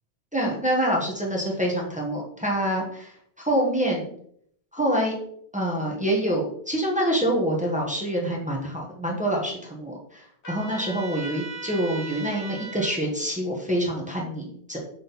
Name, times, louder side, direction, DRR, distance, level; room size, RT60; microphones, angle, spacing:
voice 1, 0.3-3.1 3.4-4.1 4.7-5.1 5.5-14.8, right 1 dB, 5° right, -2 dB, 1.3 m, -26 dB
Trumpet, 10.4-12.9, right 3 dB, 85° left, 2.1 m, -38 dB
6.5 x 3.7 x 4.1 m, 0.66 s
omnidirectional pair, 1.1 m